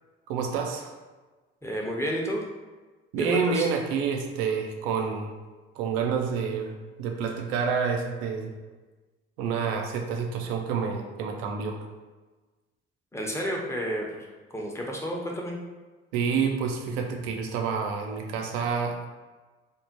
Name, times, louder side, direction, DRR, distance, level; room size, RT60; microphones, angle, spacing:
voice 1, 0.3-1.0 3.1-5.3 5.7-8.5 9.4-11.9 16.1-19.1, right 6 dB, 70° right, 3 dB, 0.5 m, -28 dB
voice 2, 1.6-2.4 3.2-3.7 13.1-14.0 14.5-15.5, equal, 10° left, -1 dB, 0.6 m, -30 dB
3.4 x 2.1 x 2.7 m, 1.3 s
figure-of-eight pair, 50°, 31 cm